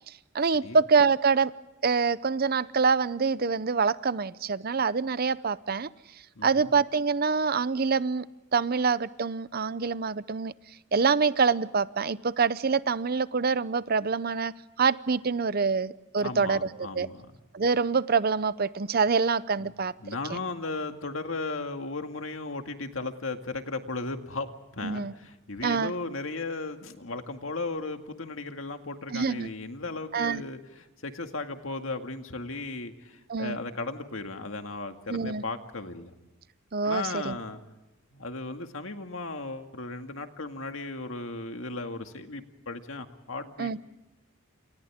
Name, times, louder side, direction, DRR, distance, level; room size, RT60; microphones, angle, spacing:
voice 1, 0.3-1.5 1.8-5.9 6.4-8.2 8.5-10.5 10.9-14.5 14.8-17.1 17.5-19.9 20.3-20.4 24.8-25.1 25.6-25.9 29.1-29.5 30.1-30.4 33.3-33.6 35.1-35.4 36.7-37.4 43.6-43.8, right 5 dB, 45° right, 17 dB, 0.6 m, -25 dB
voice 2, 6.4-6.7 16.2-17.3 19.6-19.7 20.0-24.5 24.7-36.1 36.8-37.6 38.1-43.8, left 3 dB, 70° left, 6 dB, 2.1 m, -36 dB
29.5 x 28.0 x 3.7 m, 1.0 s
head